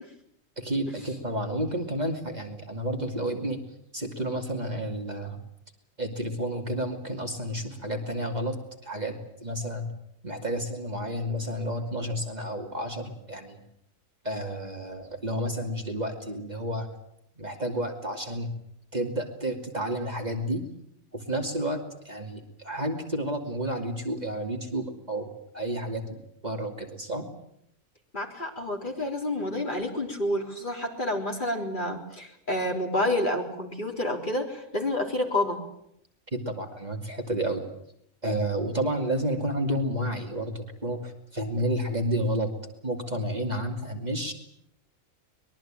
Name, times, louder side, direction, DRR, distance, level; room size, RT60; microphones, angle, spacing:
voice 1, 0.6-3.6 3.9-5.4 6.0-8.6 8.8-9.1 9.4-9.9 10.2-13.6 14.2-16.9 17.4-18.5 18.9-20.6 21.1-25.3 25.5-26.0 26.4-27.3 36.3-37.6 38.2-42.5 42.8-44.3, right 1 dB, 30° right, 3 dB, 2.8 m, -30 dB
voice 2, 28.1-35.6, left 1 dB, 40° left, 2 dB, 4.1 m, -29 dB
23.5 x 22.0 x 9.0 m, 0.74 s
omnidirectional pair, 1.4 m